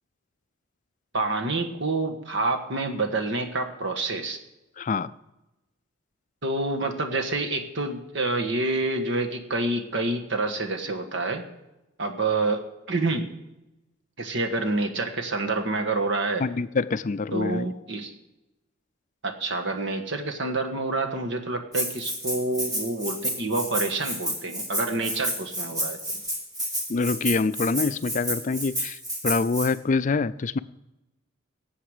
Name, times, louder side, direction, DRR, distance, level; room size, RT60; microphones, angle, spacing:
voice 1, 1.1-4.4 6.4-11.5 12.0-13.3 14.2-16.4 17.3-18.1 19.2-26.2, right 2 dB, 60° right, 4 dB, 1.5 m, -28 dB
voice 2, 4.8-5.1 16.4-17.6 26.9-30.6, left 4 dB, 40° left, 15 dB, 0.4 m, -25 dB
Rattle (instrument), 21.7-29.7, equal, 20° right, 2.7 m, -30 dB
18.5 x 8.0 x 5.0 m, 0.97 s
head